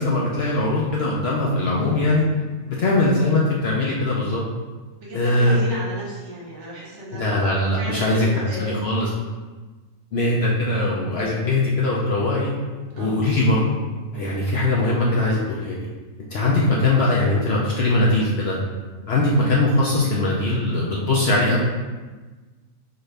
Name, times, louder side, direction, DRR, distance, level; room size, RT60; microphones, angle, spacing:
voice 1, 0.0-2.2 2.7-4.4 5.1-5.6 7.1-9.1 10.1-12.5 13.0-13.7 14.1-15.9 16.3-18.6 19.1-21.6, left 2 dB, 60° left, -5 dB, 0.7 m, -21 dB
voice 2, 5.0-7.3 7.7-8.9 13.0-13.3 14.1-14.4, equal, 60° right, -5 dB, 1.1 m, -34 dB
4.2 x 2.5 x 3.2 m, 1.3 s
omnidirectional pair, 1.5 m